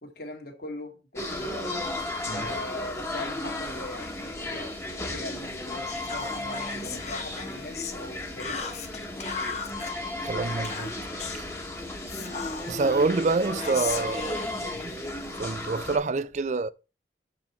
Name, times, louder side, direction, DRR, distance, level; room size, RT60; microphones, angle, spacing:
voice 1, 0.0-1.7 2.3-8.7, left 1 dB, 55° left, 1.7 m, -41 dB
sound 1, 1.2-16.0, left 2 dB, 15° left, 1.1 m, -34 dB
Whispering, 5.9-8.0 8.4-9.9 10.6-11.5 12.1-13.0 13.6-15.4, left 6 dB, 40° left, 0.8 m, -37 dB
voice 2, 10.2-10.9 11.3-11.5 12.7-14.9 15.4-16.7, right 3 dB, 40° right, 0.4 m, -27 dB
7.1 x 5.1 x 4.2 m
head